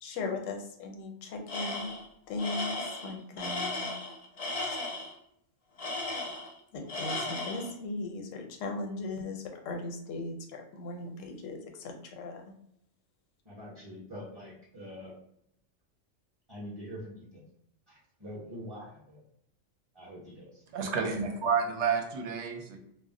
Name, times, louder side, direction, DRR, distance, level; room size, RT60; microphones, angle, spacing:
voice 1, 0.0-1.9 2.3-3.9 4.6-4.8 6.7-12.5, left 3 dB, 80° left, 3 dB, 0.9 m, -38 dB
Tools, 1.5-2.1 2.4-5.1 5.8-6.6 6.9-7.7, left 2 dB, 45° left, 0.5 m, -35 dB
voice 2, 13.5-15.1 16.5-17.4 17.9-19.2 19.9-20.6, equal, 30° right, -8 dB, 0.5 m, -44 dB
voice 3, 20.7-22.8, right 6 dB, 70° right, 3 dB, 0.8 m, -30 dB
2.3 x 2.0 x 3.6 m, 0.74 s
omnidirectional pair, 1.3 m